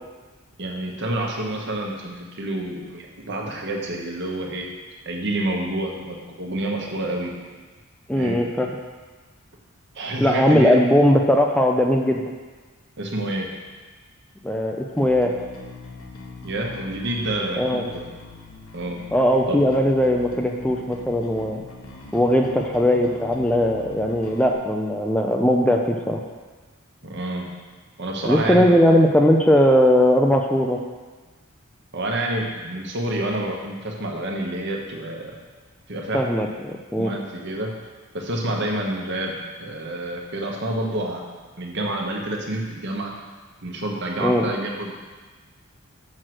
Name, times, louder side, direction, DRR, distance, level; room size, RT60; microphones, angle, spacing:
voice 1, 0.6-4.7 5.0-7.3 8.2-8.4 9.9-10.8 13.0-13.5 16.4-18.1 18.7-19.0 19.5-19.6 27.0-27.5 28.0-28.9 31.9-35.4 35.9-36.3 37.0-37.7 38.1-41.2 41.6-43.1 43.6-45.0, right 1 dB, 55° right, 0 dB, 1.2 m, -28 dB
voice 2, 8.1-8.7 10.2-12.2 14.4-15.3 17.6-17.9 19.1-21.6 22.1-26.2 28.2-30.8 36.1-37.1 44.2-44.4, equal, 5° left, 1 dB, 0.4 m, -19 dB
Bass guitar, 14.9-24.5, left 3 dB, 75° left, 1.3 m, -42 dB
6.3 x 6.3 x 6.1 m, 1.3 s
head